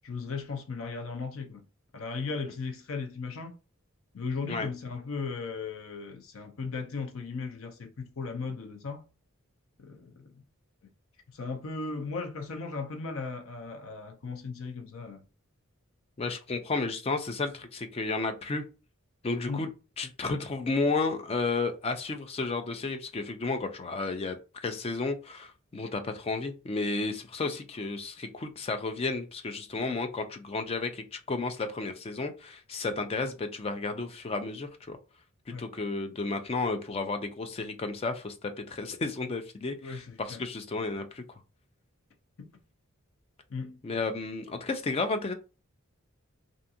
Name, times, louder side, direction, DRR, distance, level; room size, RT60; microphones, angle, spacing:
voice 1, 0.0-1.6 1.9-3.6 4.1-9.0 9.8-10.4 11.3-15.2 19.5-19.7 35.5-35.7 39.8-40.4 42.4-42.5 43.5-43.8, left 4 dB, 75° left, 0.6 m, -37 dB
voice 2, 16.2-18.6 19.2-19.7 20.0-35.0 35.5-41.2 43.8-45.3, left 3 dB, 30° left, 0.3 m, -32 dB
2.5 x 2.4 x 2.7 m
head